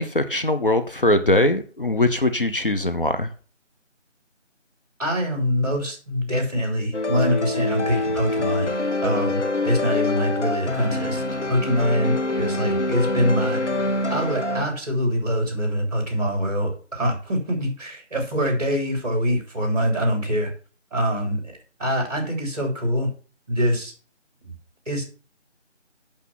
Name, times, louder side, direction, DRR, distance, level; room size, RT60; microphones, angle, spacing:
voice 1, 0.0-3.3, left 1 dB, 45° left, 9 dB, 0.9 m, -21 dB
voice 2, 5.0-8.7 9.0-13.6 14.1-20.5 20.9-21.4 21.8-23.1 23.5-23.9 24.9-25.0, equal, 30° right, 3 dB, 3.4 m, -24 dB
sound 1, 6.9-14.7, left 2 dB, 70° left, 1.4 m, -25 dB
8.5 x 6.8 x 5.9 m, 0.38 s
figure-of-eight pair, 175°, 36 cm